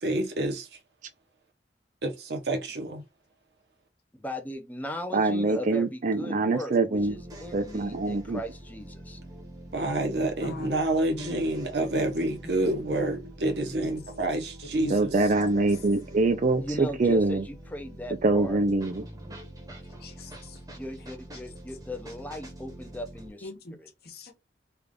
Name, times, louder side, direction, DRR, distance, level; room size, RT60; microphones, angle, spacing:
voice 1, 0.0-0.8 2.0-3.0 9.7-15.1, right 1 dB, 65° right, 0.9 m, -28 dB
voice 2, 4.1-9.2 16.6-18.6 20.7-23.5 23.8-23.9, equal, 10° left, 0.5 m, -38 dB
voice 3, 5.1-7.1 7.5-8.4 14.9-17.4 18.2-19.0, right 3 dB, 45° right, 0.4 m, -24 dB
sound 1, 6.9-23.3, equal, 20° right, 0.9 m, -45 dB
voice 4, 10.4-10.8 11.1-11.4 12.4-12.5 13.8-13.9 14.7-15.0 15.5-15.7 20.0-20.6 23.4-23.7 24.0-24.3, left 1 dB, 60° left, 1.1 m, -40 dB
3.4 x 2.4 x 3.6 m
head